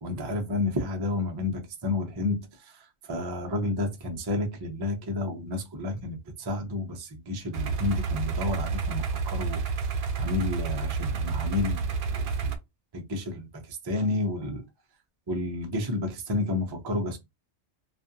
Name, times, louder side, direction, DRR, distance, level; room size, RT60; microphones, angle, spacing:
voice 1, 0.0-12.6 12.9-14.6 15.3-17.2, left 2 dB, 30° right, 0.4 m, -31 dB
sound 1, 7.5-12.6, right 4 dB, 65° right, 0.7 m, -29 dB
2.5 x 2.3 x 2.6 m
omnidirectional pair, 1.2 m